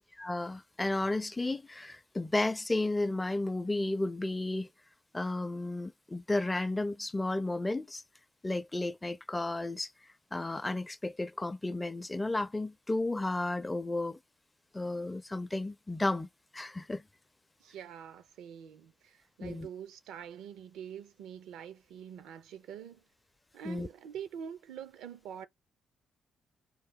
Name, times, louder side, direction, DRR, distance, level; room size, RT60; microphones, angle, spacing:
voice 1, 0.2-4.7 5.1-8.0 8.4-9.9 10.3-14.2 14.7-16.3 16.5-17.0 19.4-19.7 23.6-23.9, left 2 dB, 20° left, 0.4 m, -33 dB
voice 2, 17.6-23.0 23.5-25.5, right 8 dB, 80° right, 0.5 m, -45 dB
3.8 x 2.6 x 3.6 m
supercardioid pair, 55°, 0 cm